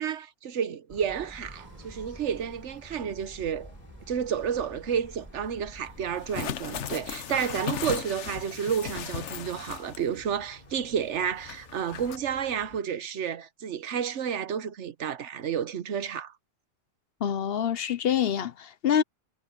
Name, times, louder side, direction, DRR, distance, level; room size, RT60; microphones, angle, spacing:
voice 1, 0.0-3.7 4.1-16.3, right 8 dB, 85° right, 1.2 m, -31 dB
sound 1, 0.9-7.2, right 1 dB, 15° right, 1.5 m, -49 dB
sound 2, 1.4-12.8, left 1 dB, 35° left, 4.1 m, -53 dB
sound 3, 6.1-10.2 10.5-10.6 11.4-12.2, left 9 dB, 80° left, 1.2 m, -36 dB
voice 2, 17.2-19.0, left 9 dB, 60° left, 0.9 m, -26 dB
omnidirectional pair, 1.2 m